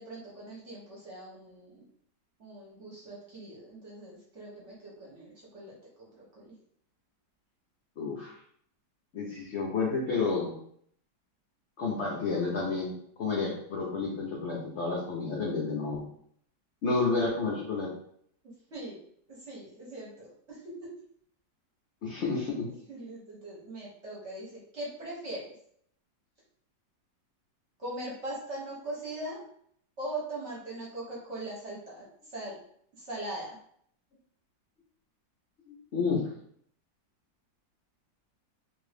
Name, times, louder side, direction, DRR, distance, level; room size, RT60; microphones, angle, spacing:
voice 1, 0.0-1.9 2.4-6.5 18.4-19.0 19.3-20.9 22.1-22.3 22.9-25.5 27.8-29.4 30.0-32.6 33.0-33.6, right 1 dB, 50° right, -5 dB, 1.0 m, -41 dB
voice 2, 8.0-8.4 9.1-10.5 11.8-16.0 16.8-17.9 22.0-22.7 35.7-36.3, left 4 dB, 70° left, -3 dB, 0.6 m, -30 dB
2.9 x 2.6 x 3.2 m, 0.65 s
omnidirectional pair, 2.0 m